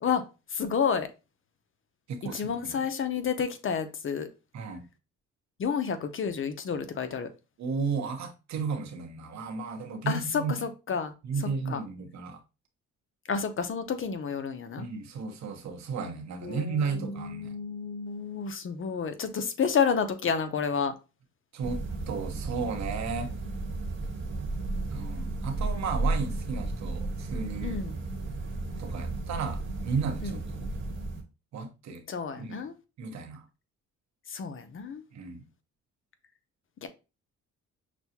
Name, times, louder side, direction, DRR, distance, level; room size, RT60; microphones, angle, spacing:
voice 1, 0.0-1.1 2.2-4.3 5.6-7.3 10.1-11.8 13.3-14.9 16.4-20.9 27.6-28.0 30.2-30.7 32.1-32.7 34.3-35.0 36.8-36.9, left 6 dB, 45° left, 0.7 m, -30 dB
voice 2, 2.1-2.8 4.5-4.8 7.6-10.5 11.3-12.4 14.8-17.5 21.5-23.3 24.9-27.8 28.8-30.4 31.5-32.0 32.4-32.6 33.0-33.4 35.1-35.4, right 5 dB, 65° right, 1.0 m, -34 dB
sound 1, 21.6-31.2, right 2 dB, 40° right, 1.2 m, -33 dB
6.1 x 2.3 x 2.8 m
cardioid pair, 90°, 30 cm